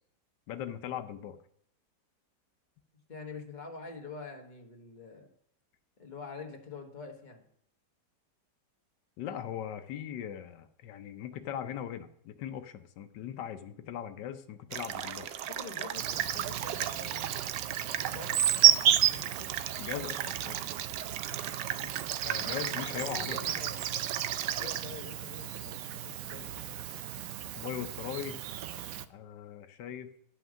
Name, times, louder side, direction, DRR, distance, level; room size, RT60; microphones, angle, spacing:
voice 1, 0.5-1.4 9.2-15.3 19.8-20.6 22.2-23.4 27.6-28.4 29.1-30.1, left 10 dB, 80° left, 8 dB, 1.4 m, -39 dB
voice 2, 3.1-5.3 6.0-7.5 15.5-19.5 21.8-22.5 22.9-23.9 24.5-26.9, left 4 dB, 30° left, 2 dB, 1.4 m, -46 dB
sound 1, 14.7-24.8, right 11 dB, 85° right, 1.3 m, -37 dB
Insect, 15.9-29.1, right 11 dB, 70° right, 0.9 m, -31 dB
10.5 x 5.8 x 6.2 m, 0.67 s
omnidirectional pair, 1.9 m